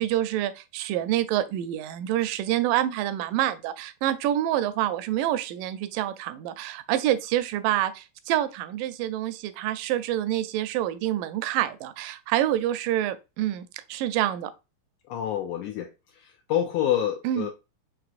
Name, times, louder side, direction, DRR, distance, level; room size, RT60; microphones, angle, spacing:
voice 1, 0.0-14.5 17.2-17.5, right 12 dB, 80° right, 2.1 m, -27 dB
voice 2, 15.1-17.5, left 10 dB, 85° left, 1.7 m, -28 dB
6.0 x 3.0 x 2.4 m
omnidirectional pair, 4.0 m